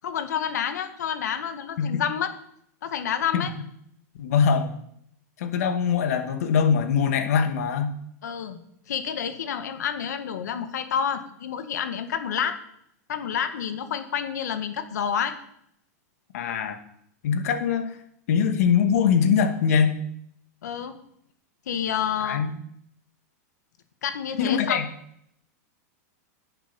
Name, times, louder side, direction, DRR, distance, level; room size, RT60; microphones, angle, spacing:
voice 1, 0.0-2.3 2.8-3.5 8.2-8.6 8.9-12.6 13.1-15.3 20.6-21.0 21.7-22.4 24.0-24.8, left 8 dB, 85° left, 8 dB, 1.8 m, -29 dB
voice 2, 4.2-4.7 5.4-7.9 16.3-16.8 17.2-17.9 18.3-20.0 22.2-22.5 24.4-24.8, left 7 dB, 60° left, 7 dB, 2.0 m, -22 dB
10.5 x 9.0 x 7.1 m, 0.72 s
supercardioid pair, 165°, 9 cm